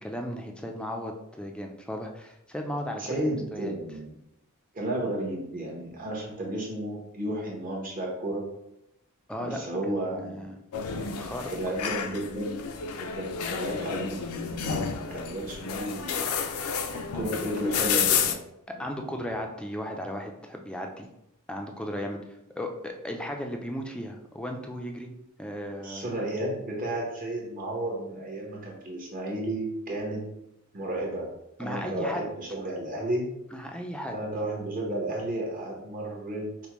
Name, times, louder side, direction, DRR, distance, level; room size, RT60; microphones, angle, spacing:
voice 1, 0.0-3.7 9.3-9.6 9.9-10.6 11.1-11.5 18.7-21.1 21.5-22.2 22.6-25.1 25.4-26.1 31.6-32.2 33.5-34.2, equal, 5° left, 3 dB, 0.4 m, -35 dB
voice 2, 3.0-4.1 4.7-8.4 9.4-10.4 11.5-12.6 13.0-16.3 17.1-18.4 18.8-19.2 25.8-30.3 30.7-31.3 31.6-33.3 34.1-36.5, right 1 dB, 40° right, -2 dB, 1.0 m, -33 dB
sound 1, 10.7-18.3, left 6 dB, 70° left, 0.4 m, -30 dB
5.1 x 2.1 x 3.0 m, 0.83 s
head